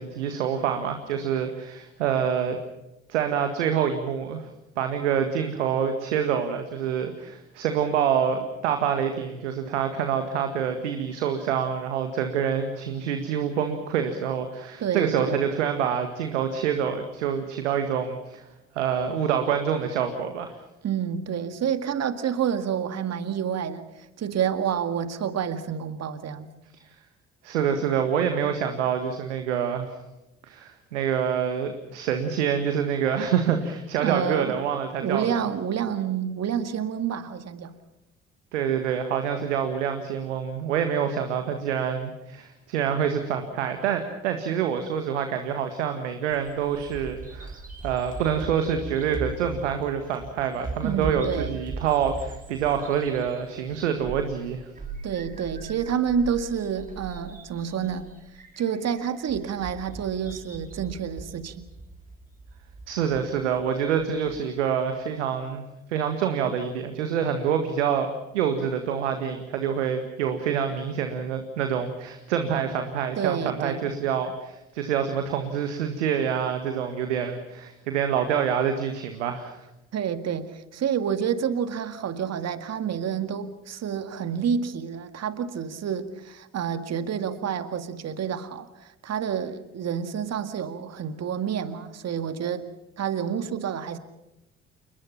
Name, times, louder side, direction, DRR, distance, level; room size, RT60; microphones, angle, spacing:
voice 1, 0.0-2.6 3.1-4.5 4.8-18.5 18.7-20.6 27.4-30.0 30.4-35.3 38.5-47.6 47.8-54.7 62.9-65.6 65.9-79.6, right 8 dB, 75° right, 1.8 m, -26 dB
voice 2, 14.8-15.4 20.8-23.9 24.2-26.5 34.0-34.6 35.0-37.8 50.8-51.5 55.0-58.1 58.6-61.7 73.2-73.9 79.9-88.7 89.0-92.7 93.0-94.0, right 8 dB, 45° right, 2.1 m, -28 dB
Bird vocalization bird call bird song, 46.3-64.4, right 3 dB, 25° right, 4.4 m, -40 dB
29.0 x 21.0 x 5.8 m
figure-of-eight pair, 50°, 36 cm